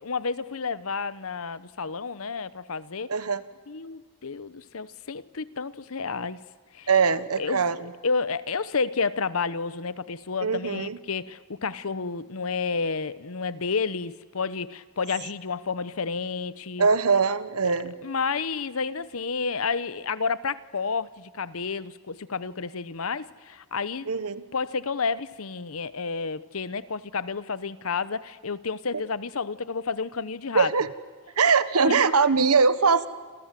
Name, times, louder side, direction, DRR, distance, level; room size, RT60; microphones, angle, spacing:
voice 1, 0.0-3.1 3.7-6.4 6.7-6.9 7.4-16.9 18.0-24.1 24.5-30.7 31.8-32.0, left 5 dB, 70° left, 0.9 m, -30 dB
voice 2, 3.1-3.4 6.9-7.7 10.4-11.0 16.8-17.9 24.1-24.4 30.5-30.9 31.4-33.1, right 5 dB, 90° right, 1.3 m, -22 dB
28.5 x 27.5 x 7.6 m
head